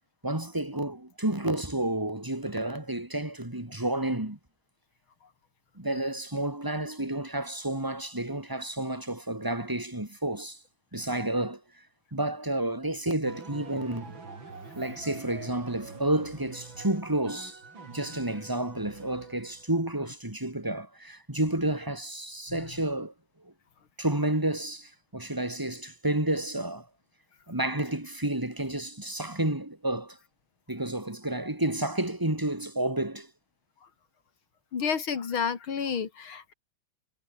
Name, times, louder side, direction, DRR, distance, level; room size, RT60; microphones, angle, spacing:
voice 1, 0.2-4.4 5.8-10.6 10.9-11.6 12.1-14.2 14.7-17.6 17.9-23.1 23.4-23.5 24.0-26.9 27.5-30.2 30.7-33.3, right 1 dB, 10° right, 3.2 m, -30 dB
sound 1, 13.2-19.7, right 4 dB, 60° right, 4.8 m, -46 dB
voice 2, 34.7-36.5, left 6 dB, 65° left, 3.2 m, -30 dB
omnidirectional pair, 2.4 m